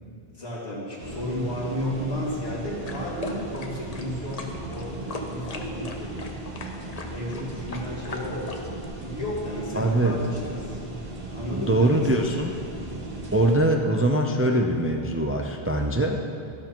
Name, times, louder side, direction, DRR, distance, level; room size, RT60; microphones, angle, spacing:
voice 1, 0.3-6.3 7.1-8.7 9.0-10.8 11.2-12.6, left 1 dB, 75° left, -6 dB, 2.7 m, -33 dB
sound 1, 1.0-13.6, right 2 dB, 40° right, 1.1 m, -37 dB
sound 2, 2.9-8.9, left 2 dB, 40° left, 0.9 m, -39 dB
voice 2, 9.7-10.2 11.5-12.5 13.3-16.2, right 1 dB, 20° right, 2 dB, 0.4 m, -22 dB
13.5 x 12.0 x 3.0 m, 2.5 s
omnidirectional pair, 1.1 m